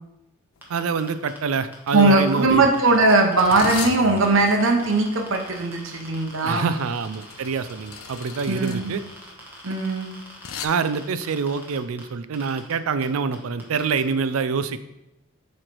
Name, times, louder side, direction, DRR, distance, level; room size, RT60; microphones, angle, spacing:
sound 1, 0.6-0.8 1.1-1.4 2.2-10.7, left 7 dB, 85° left, 0.5 m, -38 dB
sound 2, 0.6-3.9 4.2-12.0 12.3-12.7 13.0-13.1 13.3-14.0, right 1 dB, 10° right, 1.2 m, -44 dB
voice 1, 0.7-2.7 6.4-9.0 10.6-14.8, right 5 dB, 80° right, 12 dB, 0.4 m, -26 dB
voice 2, 1.9-6.7 8.5-8.9 9.6-10.1, right 2 dB, 65° right, 2 dB, 0.9 m, -19 dB
7.7 x 3.2 x 4.5 m, 0.91 s
head